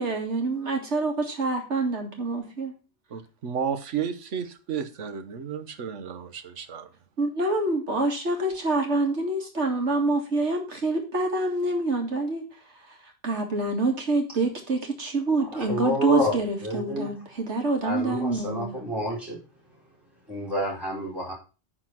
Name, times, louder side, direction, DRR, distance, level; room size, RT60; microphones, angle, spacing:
voice 1, 0.0-2.7 7.2-12.4 13.2-18.8, right 2 dB, 70° right, 2 dB, 2.4 m, -26 dB
voice 2, 3.1-6.9, right 7 dB, 90° right, 11 dB, 1.3 m, -32 dB
voice 3, 15.4-17.1 17.8-19.4 20.3-21.3, equal, ahead, -6 dB, 4.2 m, -29 dB
9.9 x 4.4 x 6.0 m, 0.33 s
omnidirectional pair, 1.2 m